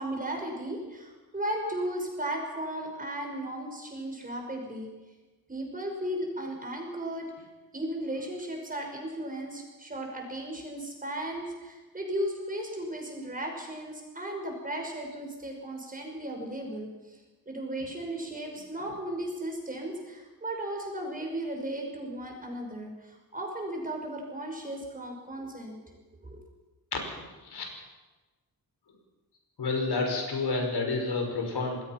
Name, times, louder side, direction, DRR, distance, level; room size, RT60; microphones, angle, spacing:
voice 1, 0.0-4.9 5.5-7.3 7.7-17.2 17.5-26.4, right 1 dB, 20° right, 2 dB, 5.6 m, -35 dB
voice 2, 26.9-27.7 29.6-31.8, left 3 dB, 85° left, 2 dB, 5.7 m, -30 dB
27.5 x 20.5 x 6.0 m, 1.2 s
wide cardioid pair, 165°, 38 cm